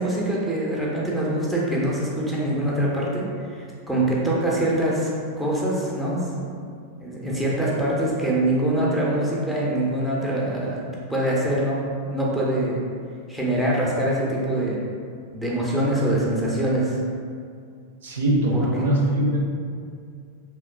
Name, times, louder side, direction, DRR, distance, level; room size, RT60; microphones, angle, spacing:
voice 1, 0.0-3.3 3.5-5.1 5.4-6.5 7.0-10.8 11.1-12.8 13.3-14.8 15.3-17.0 18.5-18.9, right 1 dB, 5° left, -6 dB, 0.5 m, -24 dB
voice 2, 18.0-19.4, right 1 dB, 65° right, -3 dB, 0.4 m, -21 dB
3.0 x 2.0 x 2.3 m, 2.2 s
figure-of-eight pair, 90°, 0 cm